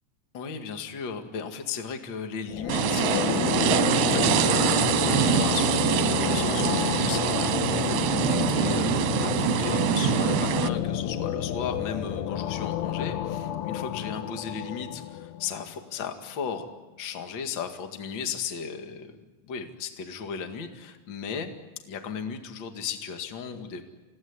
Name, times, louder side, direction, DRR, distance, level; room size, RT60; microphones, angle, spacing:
voice 1, 0.3-16.7 17.0-21.5 21.9-23.8, left 6 dB, 45° left, 5 dB, 1.5 m, -36 dB
sound 1, 2.5-15.6, left 10 dB, 85° left, 3.7 m, -29 dB
sound 2, 2.7-10.7, right 11 dB, 70° right, 2.6 m, -24 dB
29.0 x 17.5 x 9.8 m, 1.2 s
omnidirectional pair, 5.5 m